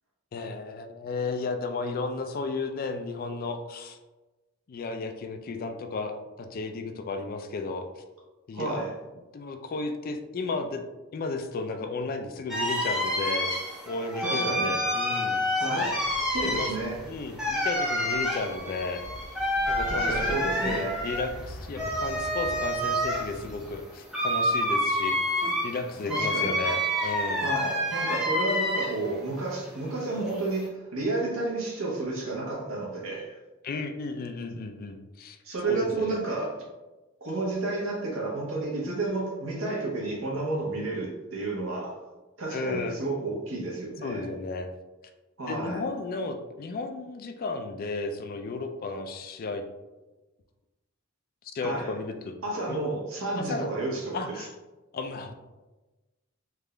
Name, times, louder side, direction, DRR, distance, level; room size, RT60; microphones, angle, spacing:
voice 1, 0.3-4.0 4.7-8.0 8.5-8.9 9.3-10.8 11.1-13.5 13.9-15.9 16.4-16.7 17.0-19.1 19.7-27.4 33.6-35.4 35.6-36.2 42.5-43.0 44.0-44.7 45.5-49.6 51.5-52.4 52.7-52.8 53.5-53.7 54.1-54.5 54.9-55.3, left 3 dB, 45° left, 6 dB, 0.3 m, -34 dB
voice 2, 8.5-8.9 14.2-14.7 15.6-16.0 16.3-17.0 19.9-21.0 26.1-26.6 27.4-33.4 35.4-36.6 37.2-41.9 42.4-44.3 45.4-45.8 51.6-51.9 52.4-54.2, right 2 dB, 75° right, -3 dB, 1.1 m, -31 dB
sound 1, 12.5-29.2 29.5-30.7, equal, 5° right, 0.7 m, -28 dB
Livestock farm animals working animals, 15.8-23.7, left 1 dB, 80° left, 0.7 m, -42 dB
3.5 x 2.4 x 3.2 m, 1.1 s
head